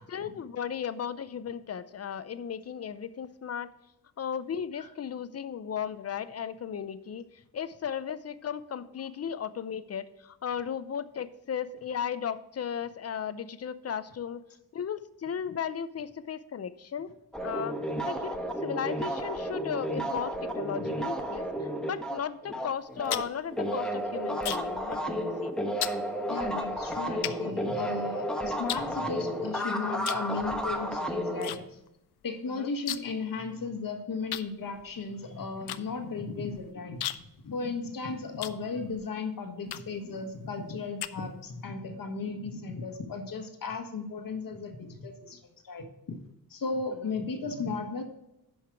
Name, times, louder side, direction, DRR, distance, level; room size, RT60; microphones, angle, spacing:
voice 1, 0.0-3.7 4.2-14.4 14.7-17.1 17.4-17.7 18.1-25.5 32.5-32.7 47.0-47.1, left 8 dB, 40° left, 14 dB, 0.6 m, -35 dB
sound 1, 17.3-23.2 23.5-31.5, equal, ahead, 1.1 m, -32 dB
sound 2, 22.8-24.8 25.1-25.4 25.8-26.0 26.7-26.8 27.2-28.2 28.7-29.5 30.0-30.3 30.6-31.6 31.9-32.0 32.2-33.2 33.5-33.6 34.3-39.1 39.7-40.1 40.6-41.6, left 12 dB, 90° left, 0.5 m, -37 dB
voice 2, 26.3-31.8 32.2-37.0 37.4-45.4 45.6-46.2 46.5-48.0, left 4 dB, 60° left, 5 dB, 1.5 m, -35 dB
10.5 x 5.6 x 4.6 m, 0.87 s
wide cardioid pair, 110°, 38 cm